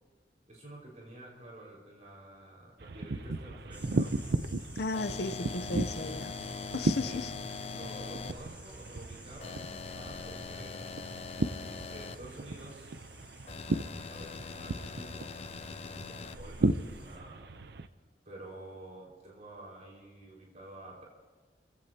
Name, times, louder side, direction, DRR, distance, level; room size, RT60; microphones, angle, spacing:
voice 1, 0.5-4.1 6.9-7.2 7.7-10.9 11.8-12.9 14.1-17.5 18.2-21.1, right 1 dB, 45° right, -3 dB, 5.1 m, -49 dB
sound 1, 2.8-17.9, right 2 dB, 65° right, 0.6 m, -36 dB
sound 2, 3.7-17.2, equal, 10° right, 3.5 m, -53 dB
voice 2, 4.8-6.3 6.7-7.3, left 3 dB, 65° left, 11 dB, 0.7 m, -35 dB
sound 3, 4.9-8.3 9.4-12.2 13.5-16.4, left 5 dB, 35° left, 0.4 m, -42 dB
29.5 x 16.0 x 2.9 m, 1.5 s
head